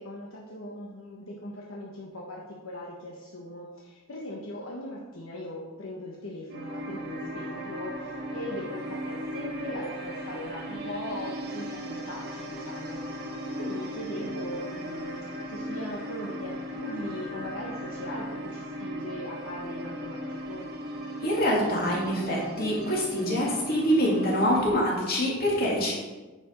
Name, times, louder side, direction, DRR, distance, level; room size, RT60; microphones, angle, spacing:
voice 1, 0.0-13.0 13.5-15.2 15.5-20.7, left 1 dB, 75° left, -3 dB, 1.2 m, -39 dB
sound 1, 6.5-24.7, equal, 45° right, 1.4 m, -37 dB
voice 2, 21.2-25.9, equal, 45° left, -4 dB, 2.5 m, -25 dB
9.8 x 5.1 x 5.2 m, 1.2 s
head